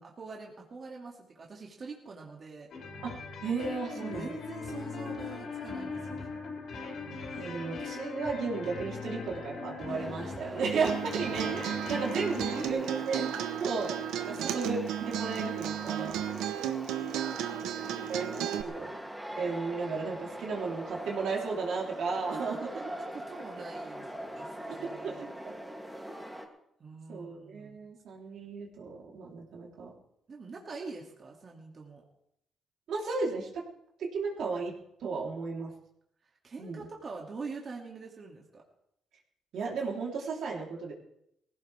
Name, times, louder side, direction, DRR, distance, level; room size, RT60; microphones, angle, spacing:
voice 1, 0.0-2.7 3.9-6.3 11.9-13.3 14.5-14.6 16.9-19.0 22.7-25.2 26.8-27.8 30.3-32.0 36.2-38.6, right 4 dB, 40° right, -1 dB, 2.4 m, -44 dB
sound 1, 2.7-12.7, left 4 dB, 65° left, 5.0 m, -40 dB
voice 2, 3.4-4.3 7.4-13.2 13.6-13.9 14.2-16.2 18.1-19.0 19.4-22.7 25.0-25.5 27.1-29.9 32.9-33.6 34.0-34.7 35.0-35.7 36.6-36.9 39.5-40.9, right 4 dB, 70° right, -2 dB, 3.5 m, -34 dB
sound 2, 9.9-26.5, equal, 5° right, 2.7 m, -43 dB
Acoustic guitar, 10.6-18.6, right 11 dB, 90° right, 1.0 m, -34 dB
19.0 x 16.0 x 3.5 m, 0.76 s
cardioid pair, 90°, 0 cm